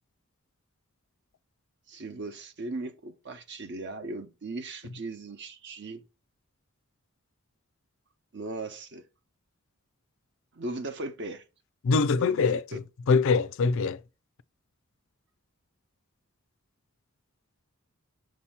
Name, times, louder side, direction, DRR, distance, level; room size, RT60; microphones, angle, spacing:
voice 1, 1.9-6.0 8.3-9.0 10.5-11.4 12.2-12.5 12.7-12.8, right 2 dB, 55° right, 0.9 m, -38 dB
voice 2, 11.8-14.0, left 4 dB, 65° left, 0.4 m, -24 dB
6.3 x 2.8 x 5.7 m
head